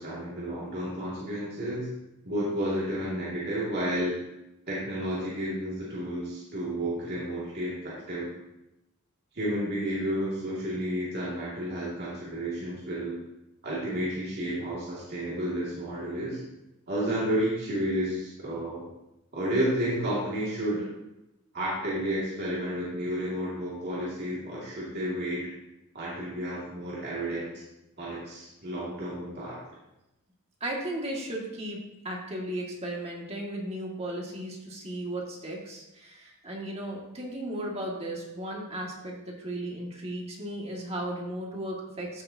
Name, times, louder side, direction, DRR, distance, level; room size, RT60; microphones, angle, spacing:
voice 1, 0.0-1.9 2.2-4.1 4.7-8.3 9.3-13.2 13.6-16.4 16.9-18.8 19.3-20.9 21.5-25.5 25.9-27.5 28.0-29.6, right 1 dB, 50° right, -8 dB, 2.4 m, -31 dB
voice 2, 17.1-17.4 30.6-42.2, right 1 dB, 30° right, -2 dB, 2.1 m, -35 dB
14.0 x 7.0 x 2.9 m, 0.92 s
head